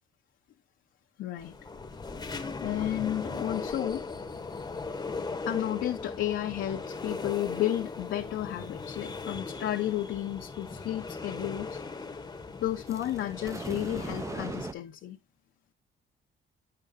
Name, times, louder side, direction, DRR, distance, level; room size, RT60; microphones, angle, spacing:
voice 1, 1.2-1.6 2.6-4.0 5.4-11.8 12.6-15.2, left 13 dB, 70° left, 0.6 m, -32 dB
sound 1, 1.4-14.7, left 4 dB, 20° left, 0.8 m, -38 dB
sound 2, 12.9-14.7, right 3 dB, 15° right, 0.4 m, -39 dB
8.2 x 6.8 x 2.5 m
cardioid pair, 90°, 20 cm